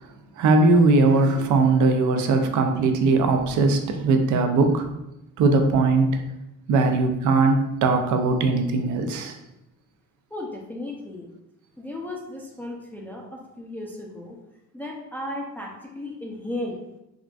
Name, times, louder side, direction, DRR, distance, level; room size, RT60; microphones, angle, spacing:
voice 1, 0.4-4.9 5.4-6.2 6.7-9.4, right 3 dB, 75° right, 5 dB, 0.5 m, -20 dB
voice 2, 10.3-11.3 11.8-14.4 14.7-16.8, left 1 dB, 5° left, -2 dB, 0.4 m, -35 dB
3.7 x 2.4 x 2.3 m, 0.89 s
cardioid pair, 90°, 30 cm